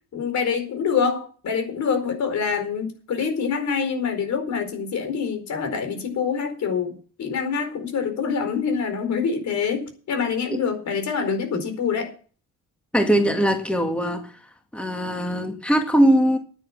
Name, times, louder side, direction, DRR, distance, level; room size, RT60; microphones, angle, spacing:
voice 1, 0.1-6.9 7.2-12.1, left 6 dB, 65° left, 7 dB, 4.6 m, -25 dB
voice 2, 12.9-14.3 14.7-16.4, equal, 5° left, 5 dB, 2.0 m, -20 dB
10.5 x 9.6 x 7.4 m, 0.41 s
cardioid pair, 90°, 30 cm